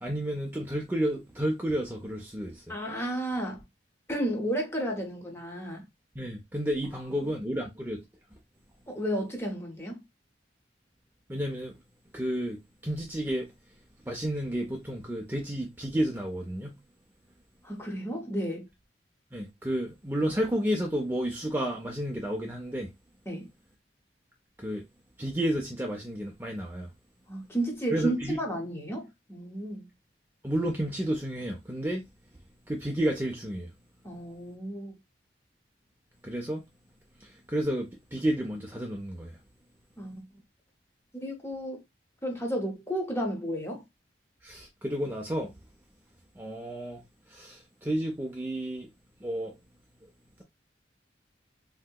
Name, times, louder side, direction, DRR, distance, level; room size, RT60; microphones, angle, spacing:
voice 1, 0.0-2.8 6.2-8.0 11.3-11.7 12.1-13.5 14.1-16.8 19.3-22.9 24.6-24.8 25.2-26.9 27.9-28.4 30.4-32.0 32.7-33.7 36.2-36.6 37.2-39.4 44.4-45.5 46.4-47.0 47.3-48.9 49.2-49.6, right 1 dB, 10° right, 0.4 m, -31 dB
voice 2, 2.7-3.6 4.1-5.9 7.2-7.3 8.9-10.0 17.6-18.7 23.3-23.5 27.3-29.9 34.0-34.9 40.0-40.2 41.2-41.8 42.2-43.8, right 1 dB, 15° left, 0.7 m, -32 dB
3.2 x 2.8 x 2.2 m
head